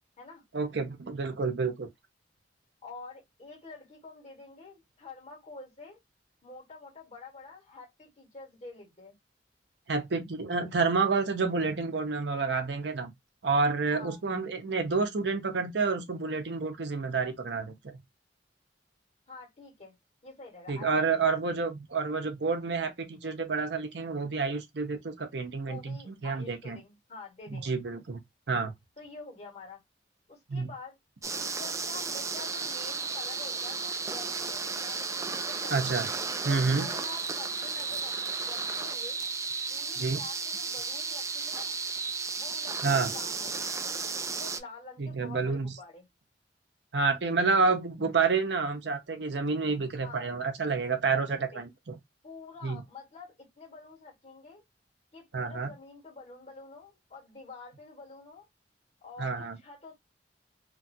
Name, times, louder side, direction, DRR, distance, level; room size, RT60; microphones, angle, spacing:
voice 1, 0.5-1.9 9.9-13.1 13.4-17.9 20.7-26.8 27.5-28.2 28.5-28.7 30.5-30.7 35.7-36.1 36.4-36.9 40.0-40.2 42.8-43.1 45.0-45.7 46.9-52.0 52.6-52.8 55.3-55.7 59.2-59.6, right 4 dB, 70° right, 0.7 m, -29 dB
voice 2, 2.8-6.0 6.4-9.1 13.9-14.2 19.3-19.9 20.2-21.4 25.6-27.7 29.0-29.8 30.3-31.0 31.4-35.0 35.5-35.8 36.5-39.2 39.7-41.7 42.3-43.8 44.4-46.0 50.0-50.3 51.1-51.7 52.2-54.6 55.1-58.5 59.0-59.9, left 4 dB, 40° left, 1.7 m, -47 dB
sound 1, 31.2-44.6, right 4 dB, 20° right, 0.3 m, -34 dB
3.0 x 2.4 x 2.6 m
head